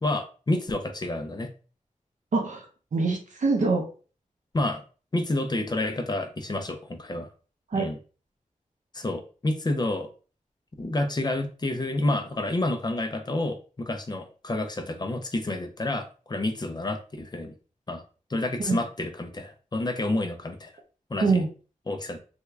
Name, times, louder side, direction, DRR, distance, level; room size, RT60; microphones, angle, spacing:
voice 1, 0.0-1.5 4.5-4.8 5.1-7.3 7.7-8.0 8.9-10.1 10.8-17.5 17.9-18.0 18.3-20.7 21.1-21.4 21.9-22.2, left 2 dB, 30° left, 6 dB, 0.5 m, -29 dB
voice 2, 2.3-2.7 2.9-3.9 7.7-7.9 18.6-18.8 21.2-21.5, right 4 dB, 65° right, 1 dB, 0.7 m, -24 dB
3.5 x 2.3 x 3.2 m, 0.38 s
wide cardioid pair, 110°, 14 cm